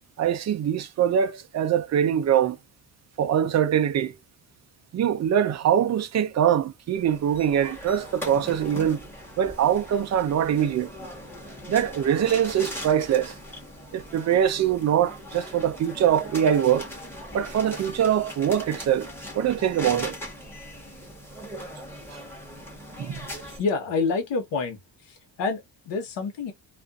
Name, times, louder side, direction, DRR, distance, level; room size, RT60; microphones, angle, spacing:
voice 1, 0.2-2.6 3.2-4.1 4.9-9.0 9.4-10.9 11.7-13.4 13.9-16.9 17.3-19.1 19.3-20.2 23.0-23.3, right 9 dB, 40° right, 0.5 m, -23 dB
sound 1, 6.9-23.6, equal, 5° left, 1.1 m, -40 dB
voice 2, 23.6-24.8 25.1-26.5, left 4 dB, 85° left, 1.2 m, -27 dB
2.5 x 2.4 x 2.3 m
cardioid pair, 145°, 42 cm